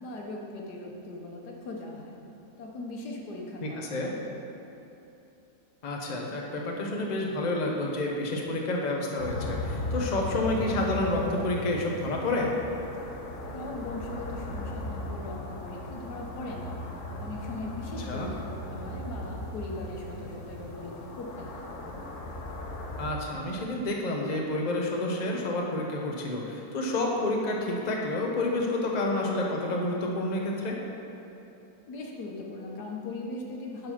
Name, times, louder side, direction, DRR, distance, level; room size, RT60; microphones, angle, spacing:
voice 1, 0.0-2.2 2.6-4.2 13.5-16.7 17.2-21.6 31.9-33.9, left 2 dB, 90° left, -1 dB, 1.7 m, -39 dB
voice 2, 3.6-4.1 5.8-12.5 18.1-18.3 23.0-30.8, left 2 dB, 30° left, -1 dB, 0.9 m, -29 dB
sound 1, 9.2-23.1, left 1 dB, 50° left, 1.3 m, -37 dB
11.0 x 4.8 x 5.8 m, 2.9 s
omnidirectional pair, 1.7 m